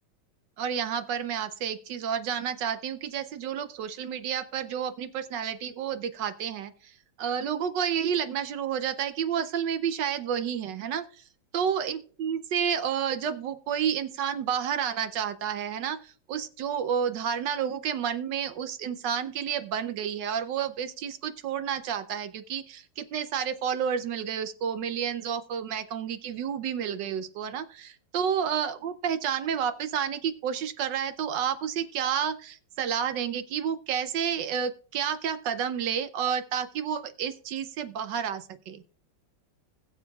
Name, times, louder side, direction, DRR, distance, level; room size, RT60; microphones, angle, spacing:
voice 1, 0.6-11.2 11.5-38.8, right 8 dB, 70° right, 11 dB, 1.2 m, -30 dB
20.5 x 7.0 x 2.3 m, 0.43 s
omnidirectional pair, 2.1 m